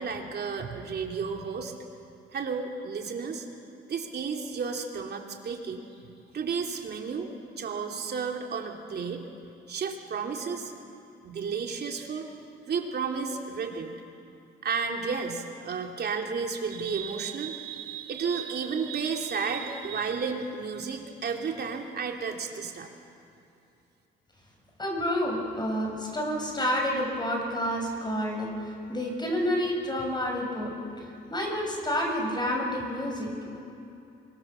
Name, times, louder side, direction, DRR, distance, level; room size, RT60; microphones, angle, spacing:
voice 1, 0.0-1.7 2.3-3.5 3.9-7.3 7.6-9.2 9.7-10.7 11.2-12.3 12.7-13.9 14.6-22.9, right 5 dB, 55° right, 2 dB, 3.2 m, -32 dB
voice 2, 24.8-33.6, equal, 20° left, 1 dB, 6.9 m, -29 dB
27.5 x 24.0 x 7.1 m, 2.7 s
cardioid pair, 90°, 20 cm